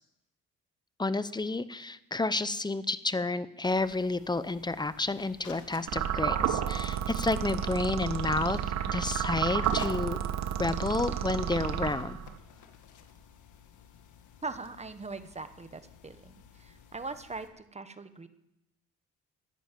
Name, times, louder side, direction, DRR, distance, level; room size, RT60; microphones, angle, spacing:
voice 1, 1.0-8.6 8.9-10.2 10.6-12.2, left 3 dB, 15° left, 15 dB, 0.8 m, -30 dB
sound 1, 3.6-17.5, left 7 dB, 75° left, 1.7 m, -54 dB
sound 2, 5.9-12.4, right 9 dB, 65° right, 1.3 m, -31 dB
voice 2, 14.4-18.3, right 3 dB, 20° right, 11 dB, 1.3 m, -41 dB
14.0 x 10.0 x 7.6 m, 0.83 s
cardioid pair, 90°, 30 cm